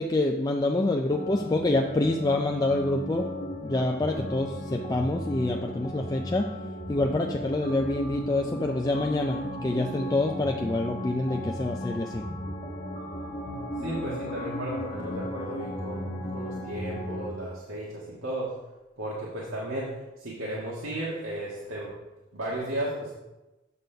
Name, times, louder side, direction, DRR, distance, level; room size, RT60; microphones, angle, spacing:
voice 1, 0.0-3.3 3.6-6.5 6.9-12.3, left 2 dB, 20° left, 2 dB, 0.4 m, -26 dB
sound 1, 1.1-17.3, left 1 dB, 35° left, 1.0 m, -35 dB
voice 2, 13.8-18.5 19.0-21.9 22.3-23.1, right 1 dB, 85° right, -5 dB, 1.6 m, -34 dB
8.1 x 4.2 x 6.6 m, 1.1 s
head